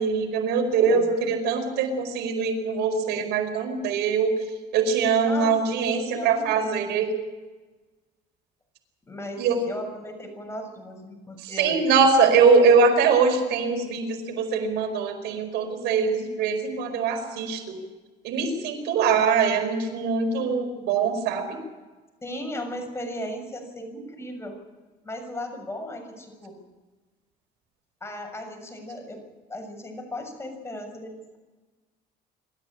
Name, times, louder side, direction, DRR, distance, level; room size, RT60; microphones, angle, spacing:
voice 1, 0.0-4.3 4.7-7.1 9.4-9.6 11.4-17.8 18.2-21.6, right 5 dB, 85° right, 5 dB, 4.9 m, -22 dB
voice 2, 0.7-1.1 5.2-7.0 9.1-11.8 22.2-24.5 25.0-26.5 28.0-29.2 29.5-31.4, left 1 dB, 15° left, 3 dB, 6.8 m, -36 dB
26.0 x 13.5 x 8.8 m, 1.2 s
cardioid pair, 110°, 17 cm